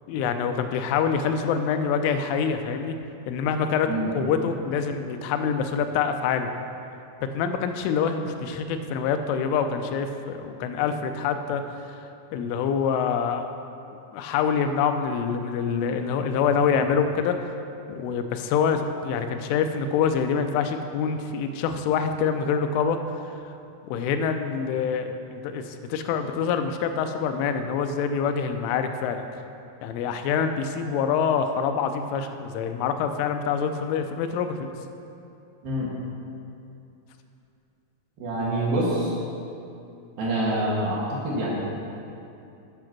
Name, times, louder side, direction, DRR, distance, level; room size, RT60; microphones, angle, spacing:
voice 1, 0.1-3.0 3.3-6.5 7.3-11.6 12.3-13.5 14.1-17.5 17.9-23.0 23.9-29.2 29.8-34.6, left 6 dB, 85° left, 7 dB, 3.1 m, -25 dB
voice 2, 38.2-39.1 40.2-41.6, right 1 dB, 65° right, -6 dB, 2.8 m, -26 dB
10.0 x 6.0 x 5.9 m, 2.6 s
omnidirectional pair, 5.4 m